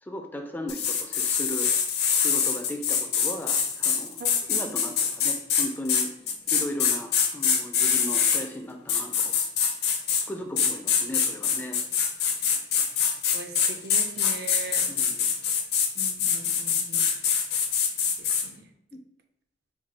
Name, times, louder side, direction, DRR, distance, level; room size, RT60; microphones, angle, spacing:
voice 1, 0.0-1.7 2.1-4.2 4.5-9.4 10.3-11.8 14.9-15.3, left 1 dB, 10° left, 4 dB, 0.3 m, -36 dB
sound 1, 0.7-8.4 8.9-10.3 10.6-18.4, left 7 dB, 60° left, 0.7 m, -24 dB
voice 2, 13.3-14.9 16.0-17.0 18.2-18.7, right 2 dB, 60° right, 6 dB, 0.5 m, -40 dB
4.5 x 2.3 x 4.1 m, 0.75 s
head